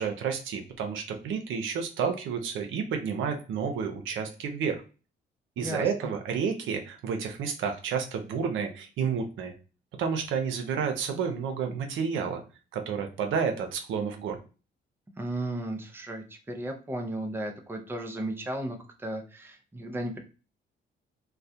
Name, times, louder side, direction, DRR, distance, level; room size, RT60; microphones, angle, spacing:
voice 1, 0.0-4.8 5.6-9.5 10.0-12.4 12.7-14.4, right 6 dB, 80° right, 4 dB, 0.6 m, -30 dB
voice 2, 5.6-6.1 15.2-20.2, right 1 dB, 10° right, 3 dB, 0.5 m, -35 dB
2.3 x 2.1 x 2.6 m, 0.33 s
cardioid pair, 90°, 20 cm